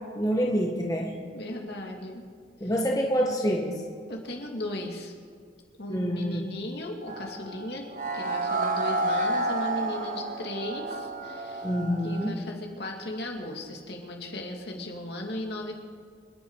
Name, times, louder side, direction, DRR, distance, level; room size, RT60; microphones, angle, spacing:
voice 1, 0.1-1.1 2.6-3.8 5.9-6.4 11.6-12.3, equal, 20° left, -1 dB, 1.5 m, -26 dB
voice 2, 1.3-2.3 2.6-2.7 4.1-5.1 5.8-7.9 8.1-11.7 12.0-15.7, left 1 dB, 60° left, 1 dB, 2.4 m, -36 dB
sound 1, 7.1-12.3, right 2 dB, 40° right, 1.1 m, -30 dB
26.5 x 11.0 x 4.8 m, 2.1 s
head